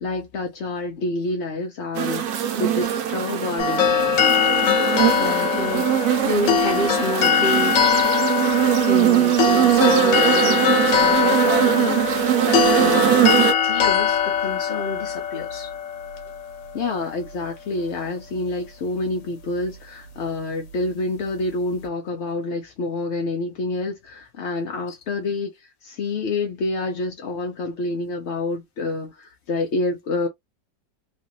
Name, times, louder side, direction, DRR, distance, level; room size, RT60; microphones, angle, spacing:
voice 1, 0.0-4.3 12.8-13.2 16.7-25.5 25.8-30.3, left 2 dB, 65° left, 0.6 m, -28 dB
sound 1, 1.9-13.5, right 10 dB, 70° right, 1.0 m, -21 dB
sound 2, 3.6-16.8, left 7 dB, 90° left, 1.5 m, -22 dB
voice 2, 5.2-7.9 8.9-12.0 12.4-13.0 13.4-15.7, left 2 dB, 40° left, 0.9 m, -29 dB
3.1 x 2.5 x 2.8 m
omnidirectional pair, 1.9 m